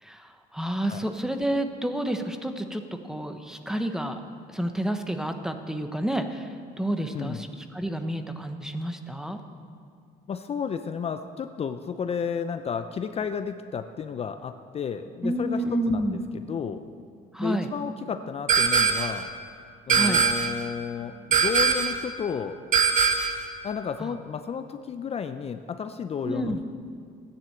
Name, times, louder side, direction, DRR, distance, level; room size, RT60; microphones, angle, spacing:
voice 1, 0.0-4.2 4.5-9.4 15.2-16.2 17.3-17.7 19.9-20.2 24.0-24.1 26.2-26.6, right 1 dB, 5° right, 6 dB, 1.0 m, -30 dB
voice 2, 10.3-16.2 16.4-16.8 17.4-19.3 19.9-22.6 23.6-26.6, left 7 dB, 35° left, 8 dB, 0.6 m, -32 dB
sound 1, 18.5-19.2 19.9-20.6 21.3-22.0 22.7-23.5, right 6 dB, 50° right, 1.3 m, -22 dB
13.5 x 9.9 x 7.8 m, 2.3 s
cardioid pair, 110°, 17 cm